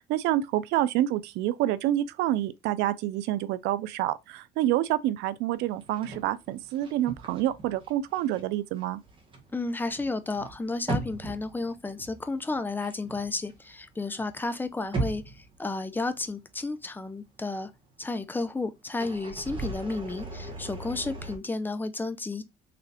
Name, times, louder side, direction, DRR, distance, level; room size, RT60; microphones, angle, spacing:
voice 1, 0.0-9.0, right 13 dB, 90° right, 0.5 m, -27 dB
sound 1, 5.8-8.4 8.7-13.9 14.2-16.2 16.6-16.7 18.9-21.4, right 2 dB, 30° right, 1.5 m, -38 dB
voice 2, 9.5-17.7 18.0-22.4, left 3 dB, 10° left, 0.6 m, -32 dB
4.1 x 3.2 x 2.8 m
cardioid pair, 110°, 17 cm